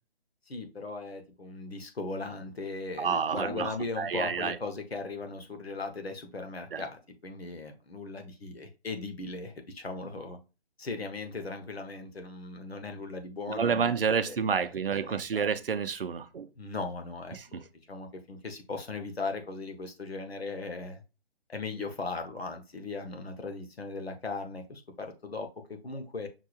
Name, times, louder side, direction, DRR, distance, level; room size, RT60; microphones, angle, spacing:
voice 1, 0.5-10.4 10.8-14.4 15.0-15.5 16.6-17.6 17.9-21.0 21.5-26.3, left 3 dB, 70° left, 1.1 m, -38 dB
voice 2, 3.0-4.6 6.7-6.8 13.5-16.5 17.3-17.6, right 6 dB, 60° right, 0.6 m, -29 dB
5.6 x 3.4 x 2.4 m
figure-of-eight pair, 145°, 32 cm